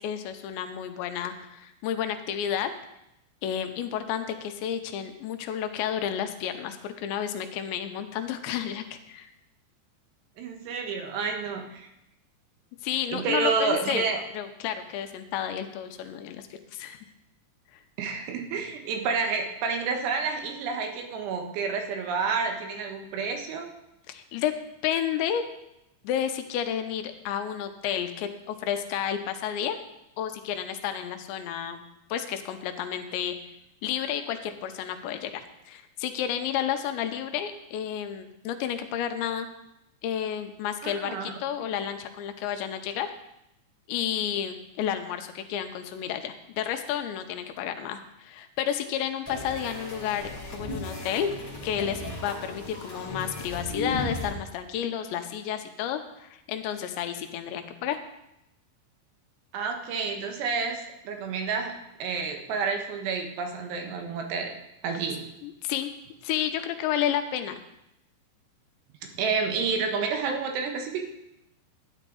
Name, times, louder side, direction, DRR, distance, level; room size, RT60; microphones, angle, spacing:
voice 1, 0.0-2.7 3.4-9.3 12.8-14.0 14.3-17.0 24.1-24.5 24.8-25.4 26.0-29.8 30.2-31.8 32.1-33.4 33.8-39.5 40.0-43.1 43.9-51.3 51.6-58.0 65.4-65.9 66.2-67.6, left 9 dB, 85° left, 7 dB, 3.0 m, -31 dB
voice 2, 10.4-11.9 13.1-14.2 18.0-23.7 40.8-41.3 41.6-41.7 59.5-61.7 62.0-64.5 64.8-65.2 69.2-71.0, right 5 dB, 75° right, 3 dB, 3.2 m, -29 dB
sound 1, 49.2-54.3, left 1 dB, 15° left, 0.8 m, -36 dB
12.5 x 9.9 x 3.9 m, 0.86 s
omnidirectional pair, 5.2 m